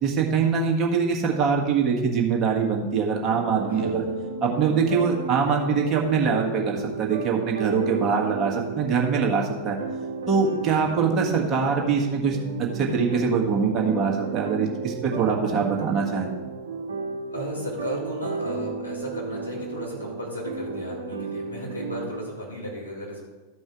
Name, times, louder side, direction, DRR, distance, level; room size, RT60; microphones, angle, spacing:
voice 1, 0.0-4.0 4.4-9.8 10.3-16.3, right 5 dB, 30° right, -1 dB, 1.8 m, -23 dB
sound 1, 3.3-22.1, right 4 dB, 65° right, 1.2 m, -33 dB
voice 2, 3.7-4.2 10.7-10.9 17.3-23.2, equal, 85° left, -5 dB, 3.3 m, -35 dB
13.5 x 5.3 x 4.9 m, 1.2 s
figure-of-eight pair, 90°, 0 cm